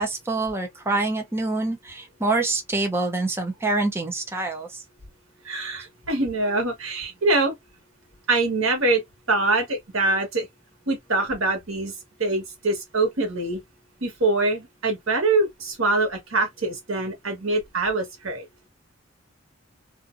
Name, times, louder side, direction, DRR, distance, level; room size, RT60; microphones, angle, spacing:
voice 1, 0.0-4.8, right 2 dB, 10° right, 0.5 m, -26 dB
voice 2, 5.4-7.5 8.3-9.0 9.3-10.5 10.9-11.9 12.2-13.6 14.0-18.4, right 2 dB, 80° right, 1.3 m, -24 dB
2.5 x 2.5 x 2.5 m
head